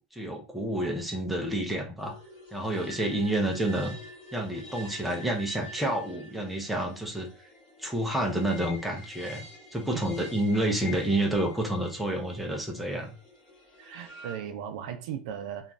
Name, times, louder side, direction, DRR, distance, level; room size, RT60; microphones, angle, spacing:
voice 1, 0.1-2.2 2.5-4.0 4.3-7.3 7.8-9.4 9.7-13.1, right 1 dB, ahead, 0.5 m, -29 dB
sound 1, 2.0-14.4, left 1 dB, 20° left, 1.6 m, -47 dB
voice 2, 13.8-15.7, right 9 dB, 65° right, 0.4 m, -37 dB
3.0 x 2.3 x 2.5 m
supercardioid pair, 180°, 4 cm